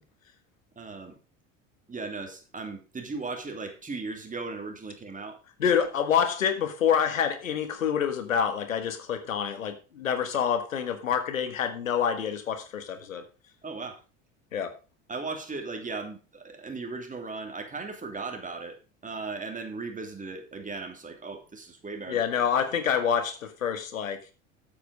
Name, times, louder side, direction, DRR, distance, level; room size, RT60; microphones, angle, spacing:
voice 1, 0.8-1.1 1.9-5.4 13.6-14.0 15.1-18.8 19.0-22.2, right 3 dB, 20° right, 5 dB, 2.9 m, -37 dB
voice 2, 5.6-13.2 14.5-14.7 22.1-24.2, left 8 dB, 90° left, 9 dB, 1.5 m, -27 dB
8.5 x 8.0 x 5.2 m, 0.32 s
hypercardioid pair, 75°, 39 cm